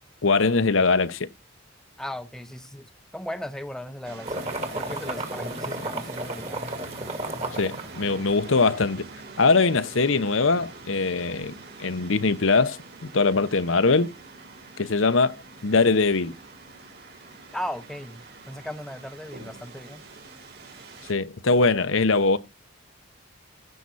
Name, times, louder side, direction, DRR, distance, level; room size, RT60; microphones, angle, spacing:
voice 1, 0.2-1.3 7.6-9.0 9.4-12.8 13.1-14.1 14.8-16.3 21.1-22.4, left 3 dB, 70° left, 0.9 m, -22 dB
voice 2, 2.0-4.5 4.7-6.6 17.5-20.0, left 1 dB, 5° left, 0.7 m, -37 dB
sound 1, 4.0-21.1, right 3 dB, 50° right, 4.2 m, -45 dB
sound 2, 4.2-8.6, right 1 dB, 30° right, 2.2 m, -33 dB
16.0 x 5.9 x 4.1 m
head